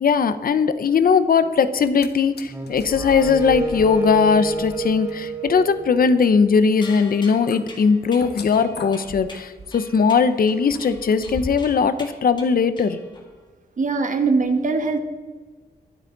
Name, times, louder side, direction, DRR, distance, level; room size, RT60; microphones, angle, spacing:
voice 1, 0.0-13.0, left 5 dB, 65° left, 0.8 m, -19 dB
sound 1, 1.7-2.1 2.4-11.7 12.1-12.2, left 5 dB, 85° left, 1.3 m, -39 dB
Wind instrument woodwind instrument, 2.5-6.7, right 2 dB, 20° right, 3.6 m, -30 dB
sound 2, 6.8-13.4, left 3 dB, 30° left, 1.9 m, -44 dB
voice 2, 13.8-15.0, right 4 dB, 50° right, 1.5 m, -21 dB
23.0 x 8.2 x 4.0 m
wide cardioid pair, 160°, 16 cm